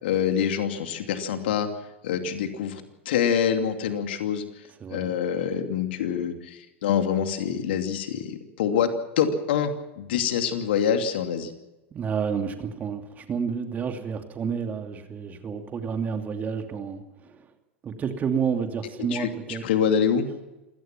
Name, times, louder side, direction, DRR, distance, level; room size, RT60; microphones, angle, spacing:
voice 1, 0.0-1.7 2.0-4.4 4.9-8.9 9.2-11.5 19.1-20.3, left 8 dB, 60° left, 6 dB, 2.6 m, -25 dB
voice 2, 4.8-5.1 11.9-17.5 17.8-19.6, right 6 dB, 25° right, 6 dB, 2.7 m, -30 dB
27.0 x 17.5 x 6.1 m, 1.0 s
figure-of-eight pair, 90°, 7 cm